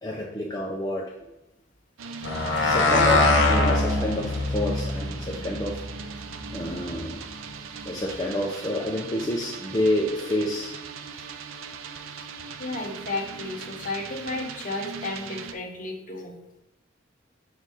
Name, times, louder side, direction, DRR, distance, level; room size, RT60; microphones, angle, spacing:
voice 1, 0.0-1.3 2.6-3.2 3.5-5.8 6.5-7.2 7.8-10.7, left 1 dB, 20° left, -3 dB, 0.5 m, -28 dB
sound 1, 2.0-15.5, right 5 dB, 85° right, 0.5 m, -39 dB
sound 2, 2.2-6.9, left 2 dB, 65° left, 1.3 m, -24 dB
voice 2, 6.3-6.7 12.6-16.4, left 2 dB, 40° left, 1 dB, 1.0 m, -33 dB
5.5 x 4.0 x 4.7 m, 0.94 s
head